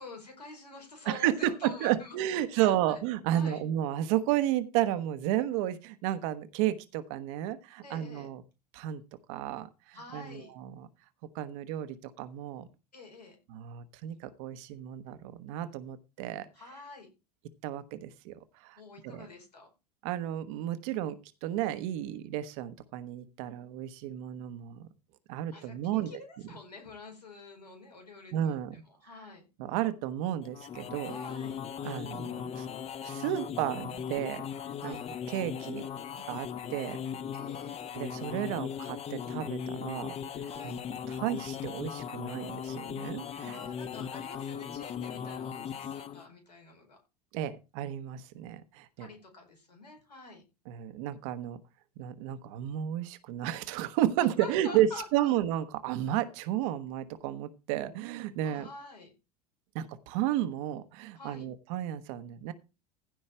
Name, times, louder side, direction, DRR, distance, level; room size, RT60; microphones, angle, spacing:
voice 1, 0.0-2.1 2.5-3.0 3.3-3.6 7.8-8.3 9.9-10.5 12.9-13.4 16.5-17.1 18.8-19.7 25.5-29.5 31.0-31.6 34.8-35.1 37.3-37.8 40.5-40.8 43.5-47.0 49.0-50.4 54.2-55.3 58.4-59.1 61.1-61.5, left 3 dB, 85° left, 3 dB, 5.0 m, -47 dB
voice 2, 1.1-8.4 8.7-9.0 9.3-10.9 11.3-12.7 13.5-16.5 17.6-19.3 20.0-24.9 25.3-26.1 28.3-28.7 29.6-31.2 31.8-32.7 33.0-34.4 34.8-35.0 35.3-35.9 36.3-37.0 37.9-40.1 40.6-40.8 41.1-43.6 47.3-49.1 50.7-51.6 52.0-58.7 59.7-62.5, right 12 dB, 55° right, 12 dB, 1.3 m, -32 dB
sound 1, 30.4-46.3, left 8 dB, 30° left, 1.0 m, -38 dB
15.5 x 5.4 x 4.4 m, 0.28 s
figure-of-eight pair, 80°, 20 cm